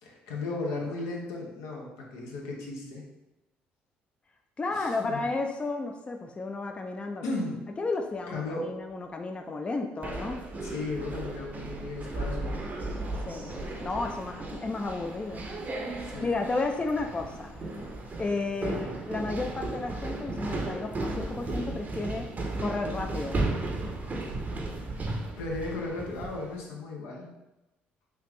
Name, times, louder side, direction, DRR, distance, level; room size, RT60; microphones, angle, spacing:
voice 1, 0.0-3.0 4.7-5.3 7.2-7.7 8.3-8.8 10.6-12.6 16.0-16.3 24.7-25.0 25.4-27.3, left 2 dB, 80° left, -1 dB, 0.7 m, -35 dB
voice 2, 4.6-7.2 7.8-10.4 13.3-13.5 13.8-15.5 16.2-17.5 18.2-22.3 22.6-23.4, left 3 dB, 25° left, 4 dB, 0.3 m, -32 dB
sound 1, 10.0-26.5, right 2 dB, 40° right, 0.6 m, -35 dB
sound 2, 12.9-18.0, left 1 dB, 55° left, 1.2 m, -53 dB
3.3 x 2.4 x 3.1 m, 1.0 s
supercardioid pair, 65°, 4 cm